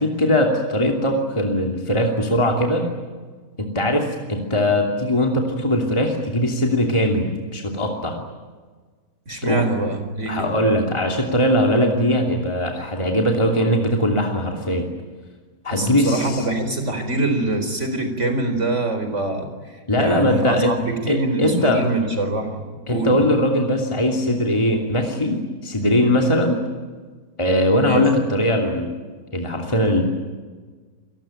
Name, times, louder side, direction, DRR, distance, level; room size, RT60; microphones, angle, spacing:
voice 1, 0.0-2.9 3.6-8.2 9.4-9.6 10.3-14.9 15.6-16.4 19.9-20.8 21.1-21.8 22.9-26.6 27.4-28.9 29.3-30.0, left 1 dB, 20° left, 1 dB, 2.9 m, -20 dB
voice 2, 9.3-10.5 15.7-23.3 27.8-28.0, right 2 dB, 50° right, 7 dB, 4.6 m, -24 dB
28.0 x 20.0 x 9.1 m, 1.4 s
omnidirectional pair, 1.6 m